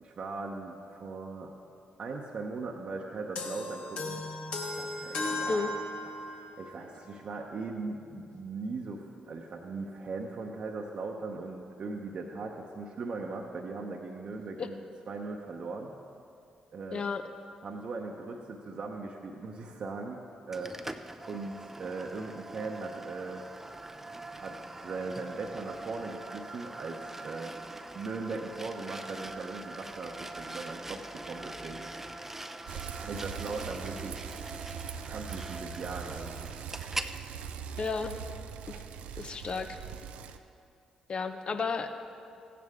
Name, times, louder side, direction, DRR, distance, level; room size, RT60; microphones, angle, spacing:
voice 1, 0.0-1.5 2.0-4.2 4.8-5.8 6.2-14.8 15.1-15.9 16.7-17.0 17.6-20.2 20.5-20.7 21.3-23.4 24.3-24.6 24.8-27.5 27.9-31.9 32.9-34.4 35.1-36.9 37.2-37.3, right 3 dB, 55° right, 0 dB, 0.9 m, -39 dB
sound 1, 3.4-6.6, left 2 dB, 65° left, 1.3 m, -36 dB
voice 2, 16.9-17.2 37.8-38.1 38.7-38.8 39.2-39.8 41.1-42.0, left 4 dB, 50° left, 8 dB, 0.8 m, -32 dB
sound 2, 20.5-37.2, right 2 dB, 15° right, 0.6 m, -43 dB
Bicycle, 32.7-40.4, right 8 dB, 75° right, 0.5 m, -41 dB
15.5 x 9.4 x 3.6 m, 2.5 s
hypercardioid pair, 45°, 2 cm